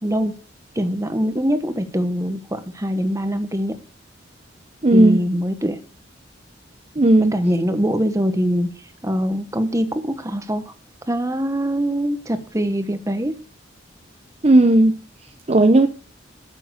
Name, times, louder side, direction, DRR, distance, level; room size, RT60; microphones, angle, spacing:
voice 1, 0.0-0.3 0.7-3.8 4.9-5.8 7.2-8.7 9.0-10.7 11.1-13.3, equal, 15° right, 1.2 m, -23 dB
voice 2, 4.8-5.3 7.0-7.4 14.4-14.9 15.5-15.9, right 1 dB, 35° right, 0.7 m, -14 dB
12.5 x 7.6 x 6.4 m
head